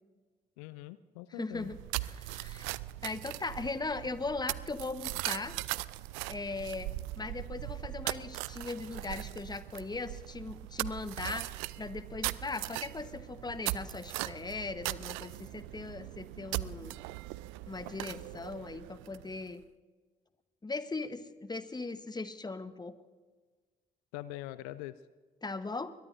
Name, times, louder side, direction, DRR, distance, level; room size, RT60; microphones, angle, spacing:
voice 1, 0.6-1.7 24.1-25.0, left 16 dB, 75° left, 16 dB, 0.4 m, -43 dB
voice 2, 1.4-2.7 3.0-5.6 6.3-6.9 7.2-17.0 17.7-19.6 20.6-22.9 25.4-25.9, left 3 dB, 20° left, 12 dB, 1.1 m, -39 dB
sound 1, 1.5-19.5, right 19 dB, 75° right, 0.4 m, -39 dB
23.0 x 21.5 x 2.6 m, 1.4 s
hypercardioid pair, 40°, 20 cm